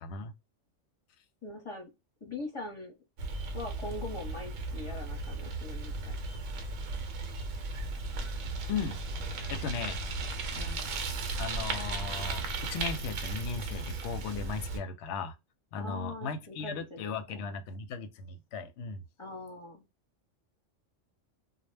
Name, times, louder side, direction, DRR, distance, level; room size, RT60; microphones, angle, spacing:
voice 1, 0.0-0.3 8.7-9.0 9.5-10.0 11.4-15.3 15.7-19.0, left 5 dB, 65° left, 0.8 m, -37 dB
voice 2, 1.4-1.9 2.2-2.9 3.5-6.2 15.8-17.5 19.2-19.8, left 2 dB, 30° left, 0.8 m, -42 dB
Bicycle, 3.2-14.8, right 3 dB, 75° right, 1.0 m, -36 dB
2.2 x 2.1 x 3.2 m
omnidirectional pair, 1.3 m